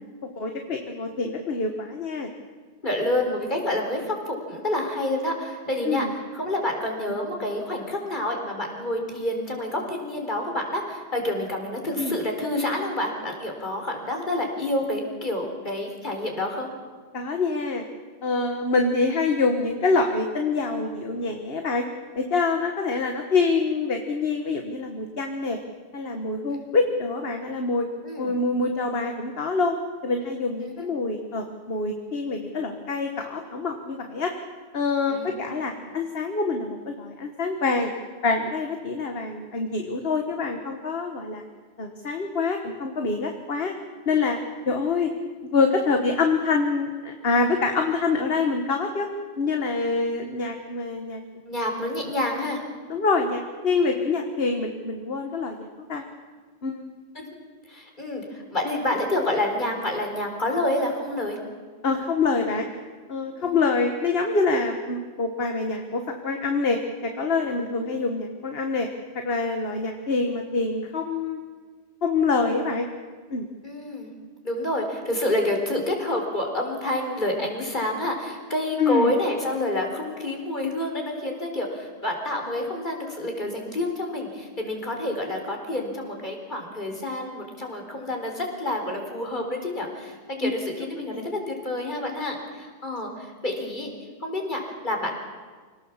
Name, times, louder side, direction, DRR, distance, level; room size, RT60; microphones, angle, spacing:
voice 1, 0.4-2.3 5.9-6.1 12.0-12.2 17.1-17.8 18.2-21.8 22.2-25.6 25.9-27.9 28.2-29.8 30.0-34.3 34.7-37.9 38.2-41.4 41.8-43.7 44.1-44.4 44.7-45.1 45.5-49.1 49.4-51.2 52.9-56.0 56.6-56.9 61.8-62.7 63.1-68.9 69.2-71.4 72.0-72.9 73.3-73.5 78.8-79.1 90.4-90.6 90.9-91.3, left 4 dB, 60° left, 4 dB, 1.7 m, -25 dB
voice 2, 2.8-6.1 6.3-16.7 26.5-26.7 28.0-28.3 30.6-30.9 35.1-35.7 51.5-52.6 57.1-57.3 57.7-61.4 63.4-63.6 73.6-74.1 74.4-93.9 94.2-95.1, left 1 dB, 45° left, 2 dB, 4.3 m, -28 dB
26.5 x 18.5 x 7.3 m, 1.5 s
omnidirectional pair, 1.1 m